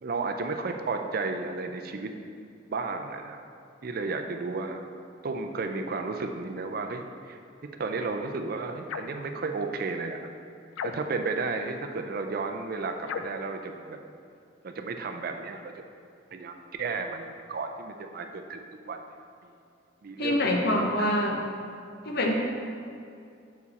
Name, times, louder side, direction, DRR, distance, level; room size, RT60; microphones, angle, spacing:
voice 1, 0.0-2.1 2.7-3.4 3.8-4.8 5.2-7.4 7.8-10.3 10.8-14.0 14.6-15.7 16.3-19.0 20.0-21.1, right 3 dB, 50° right, 5 dB, 0.4 m, -33 dB
sound 1, 8.9-9.2 10.7-11.3 13.0-13.5, left 6 dB, 85° left, 0.3 m, -36 dB
voice 2, 20.2-21.5 22.0-22.3, left 1 dB, 55° left, 0 dB, 0.8 m, -25 dB
6.9 x 4.8 x 4.1 m, 2.4 s
head